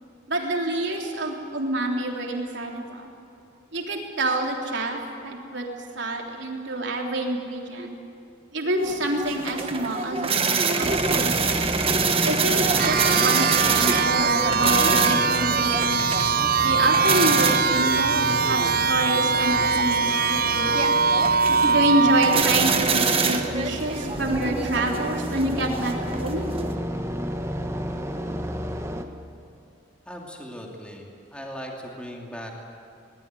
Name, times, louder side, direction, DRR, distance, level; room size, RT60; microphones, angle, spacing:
voice 1, 0.3-3.1 3.7-5.6 6.0-8.0 8.5-11.6 12.2-16.1 16.6-20.9 21.6-26.5, right 1 dB, 65° right, 1 dB, 3.5 m, -27 dB
sound 1, 8.8-26.7, right 4 dB, 30° right, 1.4 m, -26 dB
sound 2, 10.8-29.0, equal, 15° right, 1.3 m, -33 dB
sound 3, 12.8-22.4, right 5 dB, 50° right, 0.7 m, -22 dB
voice 2, 30.1-32.6, equal, 5° left, 0 dB, 2.7 m, -38 dB
21.5 x 20.0 x 9.3 m, 2.6 s
head